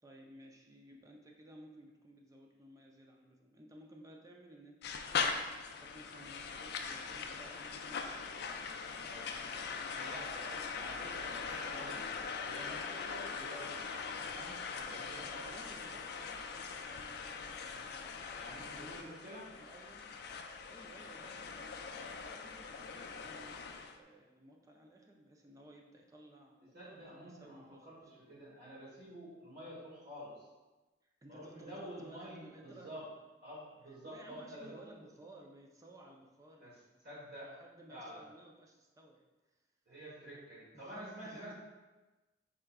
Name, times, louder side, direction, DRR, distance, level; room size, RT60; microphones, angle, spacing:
voice 1, 0.0-5.3 5.7-8.3 14.8-18.0 18.7-20.2 20.7-28.3 31.0-33.0 33.9-39.3 40.7-41.5, right 1 dB, 20° right, 1 dB, 0.5 m, -57 dB
sound 1, 4.8-24.0, left 5 dB, 60° left, 0.3 m, -41 dB
voice 2, 9.1-9.4 9.9-13.8 14.1-15.6 18.3-19.5 26.6-30.5 31.3-33.1 33.4-34.8 36.6-37.6 37.9-38.3 39.9-41.5, equal, 55° right, -7 dB, 1.3 m, -49 dB
5.6 x 3.7 x 2.3 m, 1.1 s
head